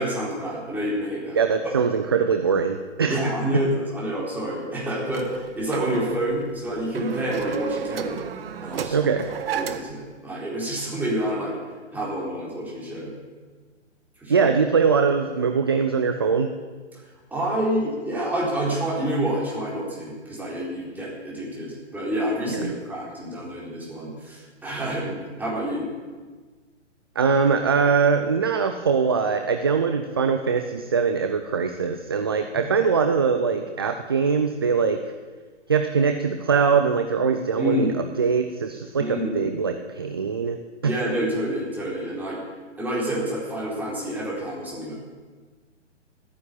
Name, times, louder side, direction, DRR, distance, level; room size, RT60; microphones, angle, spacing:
voice 1, 0.0-1.4 1.6-1.7 3.1-8.2 8.6-9.1 9.5-11.5 11.9-13.1 14.2-14.5 17.3-25.9 32.6-32.7 37.6-38.0 39.0-39.5 40.8-42.4 42.8-44.9, right 1 dB, 5° right, -6 dB, 4.2 m, -28 dB
voice 2, 1.3-3.2 8.9-9.3 14.3-16.5 22.5-22.7 27.2-35.0 35.7-40.6 40.8-40.9, right 5 dB, 20° right, 6 dB, 0.3 m, -22 dB
sound 1, 5.1-10.0, right 8 dB, 50° right, 1.1 m, -32 dB
14.0 x 9.6 x 8.6 m, 1.4 s
hypercardioid pair, 135°, 36 cm